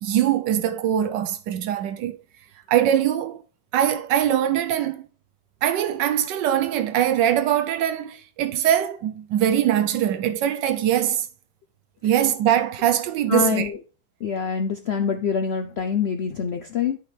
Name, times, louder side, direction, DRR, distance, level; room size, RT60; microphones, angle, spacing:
voice 1, 0.0-2.2 2.7-3.4 3.7-5.1 5.6-11.3 12.0-13.7, right 10 dB, 80° right, 1.3 m, -22 dB
voice 2, 13.3-13.8 14.2-17.0, left 7 dB, 85° left, 0.5 m, -25 dB
11.5 x 5.2 x 3.3 m
omnidirectional pair, 1.9 m